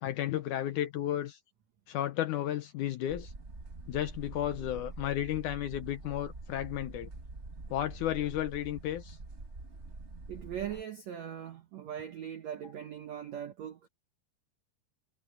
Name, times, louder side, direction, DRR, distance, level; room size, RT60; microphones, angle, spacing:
voice 1, 0.0-1.4 1.9-3.3 3.9-7.1 7.7-9.2, left 12 dB, 80° left, 1.7 m, -33 dB
sound 1, 3.1-10.8, right 2 dB, 35° right, 1.0 m, -45 dB
voice 2, 10.3-13.9, right 9 dB, 70° right, 1.7 m, -40 dB
omnidirectional pair, 4.6 m